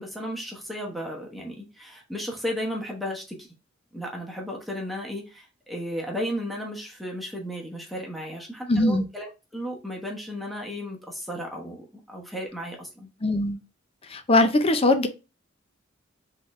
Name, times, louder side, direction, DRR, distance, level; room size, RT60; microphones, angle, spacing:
voice 1, 0.0-3.5 3.9-13.1, equal, ahead, 1.0 m, -34 dB
voice 2, 8.7-9.0 13.2-13.6 14.1-15.1, left 2 dB, 30° left, 0.6 m, -21 dB
3.9 x 3.5 x 3.1 m
head